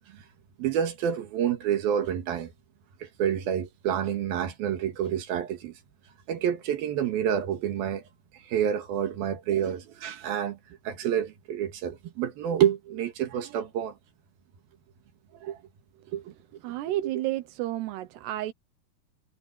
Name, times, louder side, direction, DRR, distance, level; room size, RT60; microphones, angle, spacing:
voice 1, 0.6-2.5 3.0-5.7 6.3-8.0 8.3-10.6 10.8-14.0 15.4-15.6 16.1-16.3, right 9 dB, 70° right, 3.4 m, -28 dB
voice 2, 16.6-18.5, right 15 dB, 85° right, 3.1 m, -31 dB
omnidirectional pair, 4.7 m